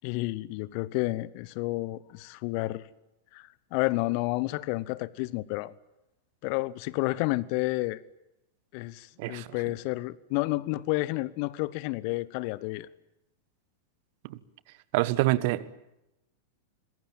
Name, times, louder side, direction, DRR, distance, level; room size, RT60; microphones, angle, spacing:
voice 1, 0.0-2.8 3.3-5.7 6.4-8.0 8.7-12.9, left 20 dB, 45° left, 20 dB, 1.0 m, -30 dB
voice 2, 14.9-15.7, right 18 dB, 50° right, 18 dB, 1.4 m, -26 dB
26.5 x 21.5 x 9.2 m, 0.90 s
figure-of-eight pair, 90°, 0 cm